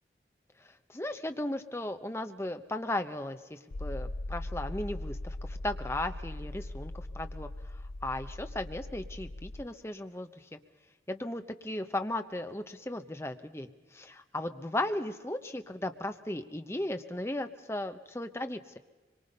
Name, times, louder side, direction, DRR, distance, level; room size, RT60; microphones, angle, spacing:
voice 1, 0.6-10.6 11.1-18.8, left 1 dB, 15° left, 7 dB, 0.9 m, -36 dB
sound 1, 3.7-9.6, left 1 dB, 65° left, 0.6 m, -40 dB
24.5 x 23.0 x 5.4 m, 1.2 s
head